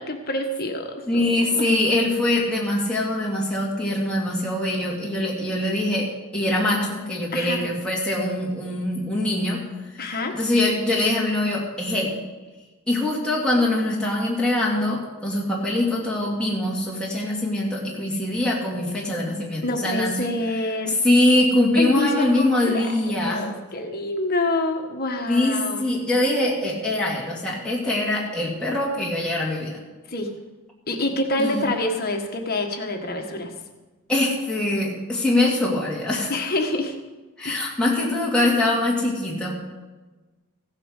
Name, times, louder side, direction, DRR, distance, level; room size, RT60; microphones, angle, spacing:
voice 1, 0.0-1.2 1.5-1.7 7.3-7.6 10.0-10.3 19.6-21.0 21.7-22.9 23.2-25.9 30.1-30.3 30.9-33.5 36.3-37.0 37.4-37.6, left 2 dB, 45° left, 4 dB, 1.4 m, -27 dB
voice 2, 1.1-9.6 10.0-12.2 12.9-20.2 21.0-23.5 25.3-29.8 31.4-31.6 34.1-36.3 37.4-39.5, left 1 dB, 5° left, -5 dB, 2.3 m, -23 dB
15.5 x 8.9 x 6.5 m, 1.2 s
head